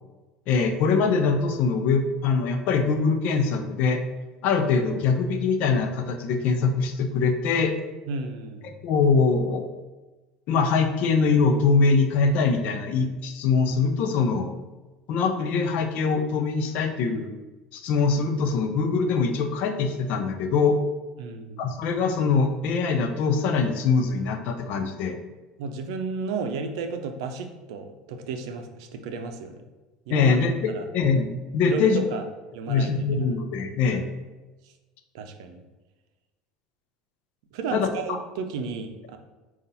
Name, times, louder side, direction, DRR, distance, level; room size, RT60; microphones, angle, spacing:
voice 1, 0.5-4.0 4.4-7.7 8.6-9.6 10.5-14.5 15.1-17.3 17.7-20.8 21.6-25.2 30.1-32.0 32.7-34.1 37.7-38.2, left 4 dB, 60° left, 6 dB, 0.6 m, -23 dB
voice 2, 8.1-8.8 21.2-21.7 25.6-29.6 30.1-30.4 30.7-30.9 31.7-32.3 32.5-33.0 33.7-33.8 34.6-34.7 35.1-35.6 37.5-39.2, right 4 dB, 75° right, 6 dB, 0.5 m, -33 dB
5.4 x 2.4 x 4.1 m, 1.2 s
supercardioid pair, 95°, 3 cm